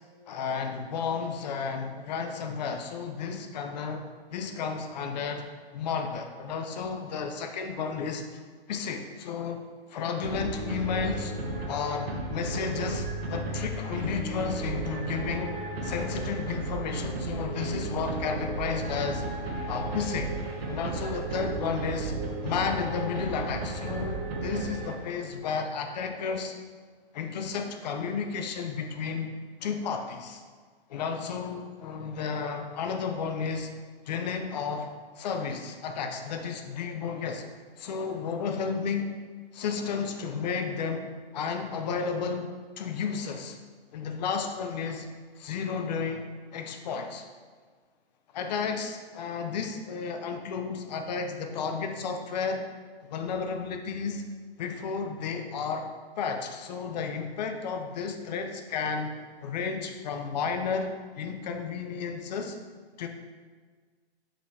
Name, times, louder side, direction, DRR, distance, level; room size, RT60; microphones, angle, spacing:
voice 1, 0.3-5.5 5.7-8.4 8.7-9.6 9.9-11.4 11.7-15.6 15.8-19.2 19.7-20.3 20.7-22.1 22.4-26.5 27.1-29.3 29.6-30.4 30.9-33.8 34.1-34.9 35.2-37.5 37.8-39.1 39.5-42.5 42.8-43.6 43.9-45.1 45.4-47.3 48.3-52.6 53.1-54.2 54.6-55.9 56.2-59.1 59.4-60.9 61.2-62.6 63.0-63.1, left 5 dB, 40° left, 6 dB, 0.7 m, -32 dB
sound 1, 10.2-25.3, right 2 dB, 65° right, 1.4 m, -34 dB
5.9 x 4.9 x 4.2 m, 1.5 s
hypercardioid pair, 155°, 33 cm